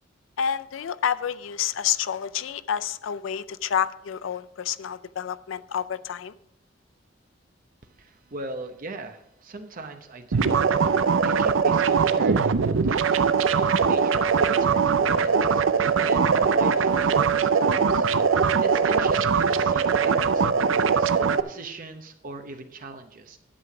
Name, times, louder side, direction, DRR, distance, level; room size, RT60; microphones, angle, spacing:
voice 1, 0.4-6.3, left 8 dB, 80° left, 15 dB, 0.4 m, -29 dB
voice 2, 7.8-10.6 10.8-13.2 13.5-18.1 18.6-23.4, right 3 dB, 45° right, 6 dB, 0.8 m, -40 dB
sound 1, 10.3-21.4, right 6 dB, 85° right, 0.5 m, -21 dB
11.0 x 7.7 x 4.8 m, 0.77 s
head